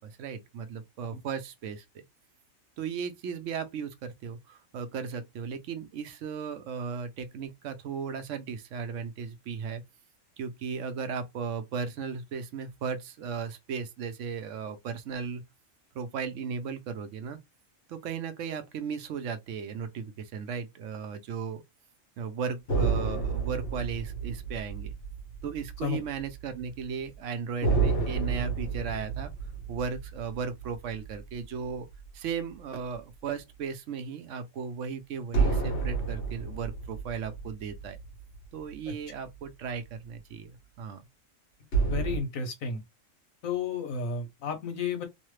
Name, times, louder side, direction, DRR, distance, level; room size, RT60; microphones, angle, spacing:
voice 1, 0.0-2.0 2.8-9.8 10.4-15.4 15.9-17.4 17.9-21.6 22.2-24.9 25.4-29.3 29.7-31.9 32.1-38.0 38.5-41.0, right 6 dB, 75° right, 0.9 m, -36 dB
sound 1, 22.7-26.4 26.7-26.8 27.6-32.2 35.3-38.9 41.7-42.2, right 4 dB, 60° left, 1.4 m, -30 dB
voice 2, 41.9-42.8 43.4-45.0, left 5 dB, 90° left, 1.3 m, -32 dB
3.1 x 2.0 x 3.1 m
omnidirectional pair, 1.4 m